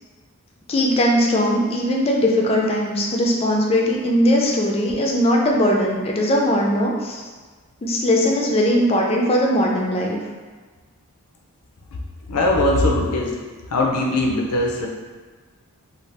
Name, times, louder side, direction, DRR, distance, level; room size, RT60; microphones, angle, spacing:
voice 1, 0.7-7.2 7.8-10.2, equal, 25° left, -1 dB, 0.3 m, -19 dB
voice 2, 12.3-13.4 13.7-14.9, left 1 dB, 90° left, 0 dB, 0.5 m, -20 dB
2.7 x 2.3 x 3.2 m, 1.4 s
head